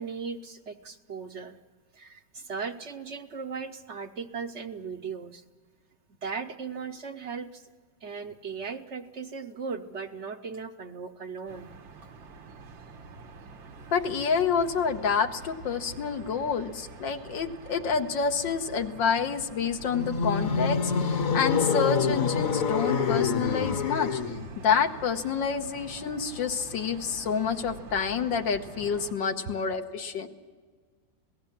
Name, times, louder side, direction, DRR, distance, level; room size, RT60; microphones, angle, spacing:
voice 1, 0.0-1.6 1.9-5.4 6.2-7.7 8.0-11.7, right 5 dB, 55° right, 8 dB, 0.8 m, -37 dB
sound 1, 11.5-29.1, right 4 dB, 90° right, 2.1 m, -46 dB
voice 2, 13.9-24.2 24.6-30.3, left 6 dB, 80° left, 5 dB, 1.8 m, -28 dB
sound 2, 19.9-24.5, left 5 dB, 50° left, 1.4 m, -26 dB
27.0 x 18.0 x 7.3 m, 1.5 s
omnidirectional pair, 2.0 m